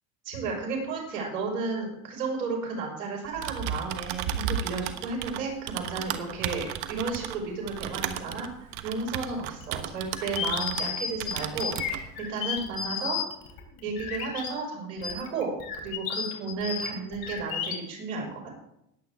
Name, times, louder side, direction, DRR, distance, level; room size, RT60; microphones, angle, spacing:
voice 1, 0.2-13.2 13.8-18.5, right 4 dB, 90° right, 0 dB, 5.3 m, -33 dB
Typing, 3.3-10.9 11.2-12.0, right 10 dB, 70° right, 1.2 m, -34 dB
sound 1, 9.6-14.5 15.0-17.8, left 7 dB, 55° left, 3.4 m, -33 dB
20.0 x 8.4 x 3.6 m, 0.80 s
supercardioid pair, 95°, 42 cm